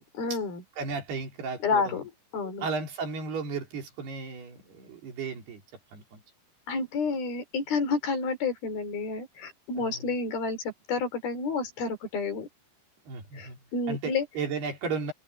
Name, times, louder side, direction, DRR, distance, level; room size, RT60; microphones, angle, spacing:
voice 1, 0.2-0.6 1.6-2.7 6.7-10.6 10.9-12.5 13.3-14.3, left 4 dB, 65° left, 5.3 m, -30 dB
voice 2, 0.8-2.0 2.6-5.6 5.9-6.2 9.8-10.1 13.1-13.6 13.9-15.1, right 4 dB, 70° right, 6.0 m, -34 dB
omnidirectional pair, 4.7 m